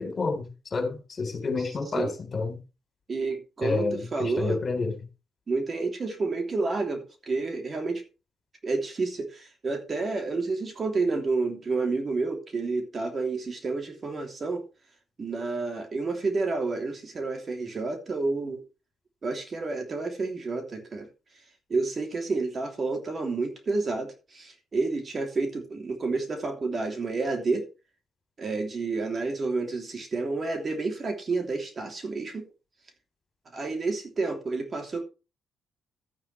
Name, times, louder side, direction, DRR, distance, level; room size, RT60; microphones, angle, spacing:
voice 1, 0.0-2.6 3.6-4.9, left 3 dB, 40° left, 3.9 m, -29 dB
voice 2, 1.6-2.1 3.1-4.6 5.5-8.0 8.6-14.6 15.2-18.6 19.2-21.1 21.7-27.7 28.4-32.5 33.5-35.0, right 3 dB, 40° right, 3.0 m, -30 dB
13.0 x 9.3 x 3.3 m
cardioid pair, 90°, 0 cm